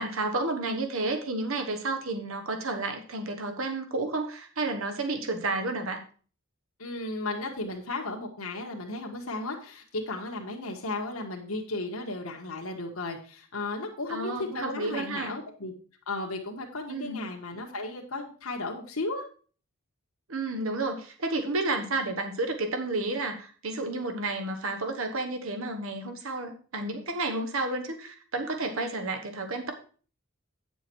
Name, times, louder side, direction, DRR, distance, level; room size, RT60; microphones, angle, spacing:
voice 1, 0.0-6.0 14.1-15.3 16.9-17.2 20.3-29.7, right 2 dB, 75° right, 5 dB, 1.2 m, -31 dB
voice 2, 6.8-15.7 16.1-19.2, left 2 dB, 90° left, 1 dB, 1.5 m, -35 dB
9.1 x 7.0 x 4.5 m, 0.40 s
head